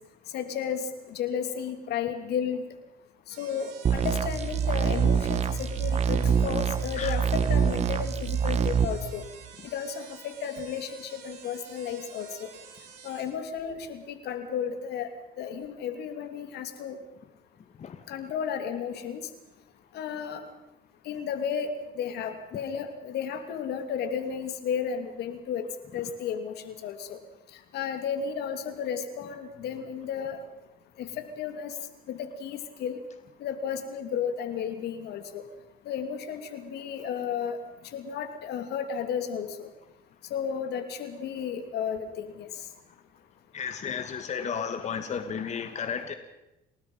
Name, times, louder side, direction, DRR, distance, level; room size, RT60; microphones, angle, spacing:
voice 1, 0.3-2.6 3.3-9.2 9.7-12.5 13.0-17.0 18.1-19.2 19.9-20.4 21.0-25.6 25.9-27.2 27.7-30.4 31.0-31.7 32.1-33.0 33.4-35.4 35.8-37.6 37.9-39.7 40.3-42.5, left 7 dB, 75° left, 8 dB, 2.9 m, -33 dB
sound 1, 3.3-13.3, right 7 dB, 85° right, 7.3 m, -49 dB
sound 2, 3.8-8.8, right 7 dB, 40° right, 1.4 m, -25 dB
voice 2, 43.5-46.1, left 7 dB, 45° left, 8 dB, 1.9 m, -33 dB
29.5 x 19.0 x 5.6 m, 0.95 s
cardioid pair, 110°, 17 cm